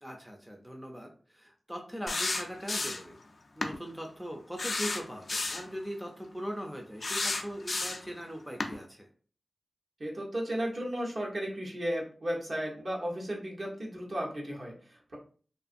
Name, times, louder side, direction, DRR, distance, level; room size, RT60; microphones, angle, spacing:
voice 1, 0.0-3.2 3.6-9.1, equal, 5° right, 1 dB, 0.5 m, -40 dB
sound 1, 2.1-3.1 3.6-3.8 4.6-5.7 7.0-8.1 8.6-8.7, left 3 dB, 60° left, 0.3 m, -32 dB
voice 2, 10.0-15.2, equal, 55° right, -3 dB, 0.9 m, -34 dB
2.5 x 2.4 x 2.5 m, 0.41 s
wide cardioid pair, 60°, 0 cm